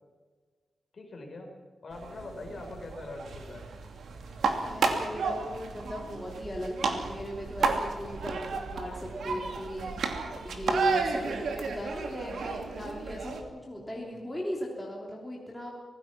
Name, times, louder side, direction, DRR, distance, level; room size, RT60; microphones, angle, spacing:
voice 1, 0.9-1.5 1.8-3.6 13.8-14.2, left 2 dB, 40° left, 2 dB, 4.6 m, -43 dB
sound 1, 1.9-13.4, right 4 dB, 70° right, 2.6 m, -33 dB
voice 2, 4.6-9.9 10.4-15.7, equal, 5° left, -2 dB, 3.2 m, -37 dB
25.0 x 18.5 x 6.0 m, 1.5 s
wide cardioid pair, 180°, 0 cm